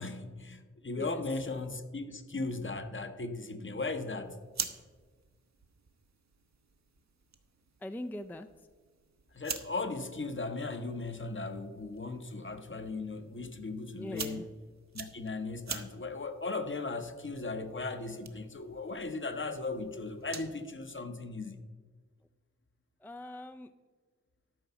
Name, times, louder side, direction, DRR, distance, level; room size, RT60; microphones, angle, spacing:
voice 1, 0.0-4.4 9.3-14.4 14.9-21.6, left 3 dB, 40° left, 8 dB, 1.0 m, -37 dB
sound 1, 4.2-20.6, right 6 dB, 65° right, 1.0 m, -47 dB
voice 2, 7.8-8.5 14.0-14.5 23.0-23.7, left 1 dB, 5° left, 8 dB, 0.4 m, -41 dB
12.5 x 4.7 x 6.9 m, 1.5 s
cardioid pair, 55°, 30 cm